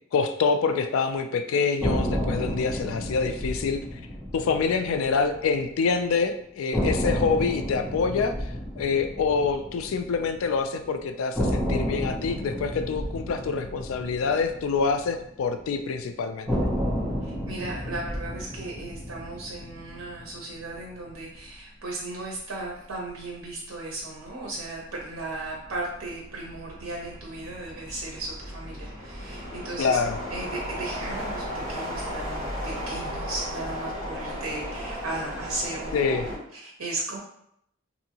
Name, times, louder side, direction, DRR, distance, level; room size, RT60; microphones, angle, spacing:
voice 1, 0.1-3.8 4.3-8.4 8.8-16.5 29.8-30.2 35.9-36.3, left 5 dB, 75° left, 8 dB, 0.3 m, -26 dB
sound 1, 1.8-5.9 6.2-6.3 6.7-10.8 11.4-15.7 16.5-20.8, equal, ahead, 0.6 m, -31 dB
voice 2, 17.2-30.0 30.3-37.2, right 2 dB, 75° right, -2 dB, 0.6 m, -36 dB
sound 2, 21.4-21.6 22.0-36.4, equal, 35° right, 1.3 m, -36 dB
2.7 x 2.6 x 2.8 m, 0.73 s
head